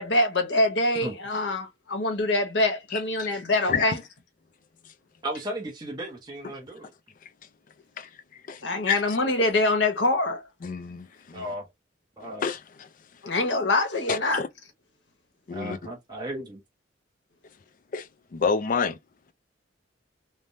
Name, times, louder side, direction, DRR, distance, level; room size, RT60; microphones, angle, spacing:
voice 1, 0.0-4.0 8.6-10.4 13.2-14.4, left 2 dB, 65° left, 1.0 m, -24 dB
voice 2, 2.9-3.3 3.7-3.9 6.4-6.5 7.2-7.3 8.0-9.2 10.6-11.5 12.4-12.9 14.1-14.5 15.5-15.8 17.9-19.0, left 5 dB, 45° left, 0.4 m, -30 dB
voice 3, 5.2-6.9 11.3-11.7 12.2-12.5 15.5-16.6, right 1 dB, 25° right, 0.8 m, -35 dB
3.2 x 2.1 x 2.6 m
head